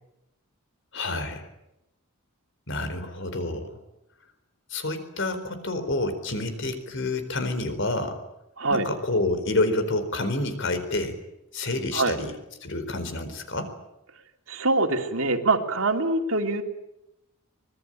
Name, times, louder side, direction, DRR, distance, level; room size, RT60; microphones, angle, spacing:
voice 1, 0.9-1.4 2.7-3.8 4.7-8.2 8.7-11.2 11.5-12.3 12.6-13.7, left 2 dB, 55° left, 9 dB, 4.3 m, -28 dB
voice 2, 14.5-16.6, right 2 dB, 65° right, 5 dB, 2.9 m, -24 dB
24.5 x 20.5 x 9.1 m, 0.88 s
head